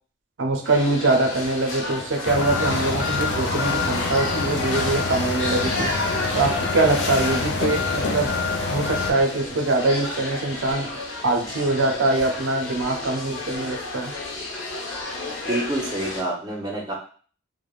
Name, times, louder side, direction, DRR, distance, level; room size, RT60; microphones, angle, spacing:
voice 1, 0.4-5.9 6.3-8.4 8.7-10.9 11.2-14.1, right 2 dB, 70° right, 3 dB, 0.5 m, -23 dB
sound 1, 0.6-16.2, left 2 dB, 80° left, 0.8 m, -32 dB
sound 2, 2.2-9.1, left 3 dB, 55° left, 0.4 m, -26 dB
voice 2, 15.4-16.9, right 1 dB, 20° right, -2 dB, 0.6 m, -27 dB
3.3 x 2.1 x 2.3 m, 0.43 s
head